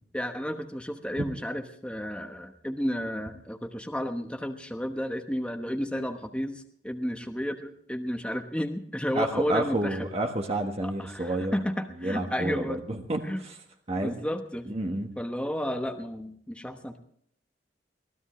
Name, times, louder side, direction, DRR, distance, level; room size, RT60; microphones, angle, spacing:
voice 1, 0.1-10.1 10.8-12.8 13.2-13.4 13.9-14.7 15.2-17.0, equal, 5° left, 5 dB, 1.1 m, -32 dB
voice 2, 9.1-11.5 12.0-13.6 13.9-14.2 14.7-15.1, right 1 dB, 35° right, 3 dB, 1.4 m, -30 dB
23.0 x 16.5 x 3.2 m, 0.65 s
head